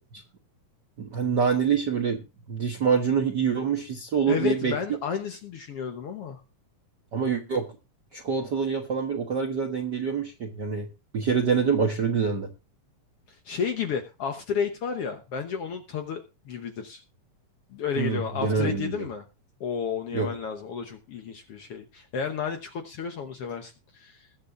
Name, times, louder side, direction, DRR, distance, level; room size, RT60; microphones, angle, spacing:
voice 1, 1.0-2.2 2.5-4.7 7.1-7.7 8.1-10.9 11.1-12.5 18.0-19.0 20.1-20.3, right 6 dB, 55° right, 2 dB, 1.1 m, -26 dB
voice 2, 4.3-6.4 13.3-17.0 17.7-19.2 19.6-24.3, left 6 dB, 60° left, 6 dB, 1.6 m, -32 dB
21.0 x 7.9 x 2.5 m, 0.29 s
omnidirectional pair, 3.6 m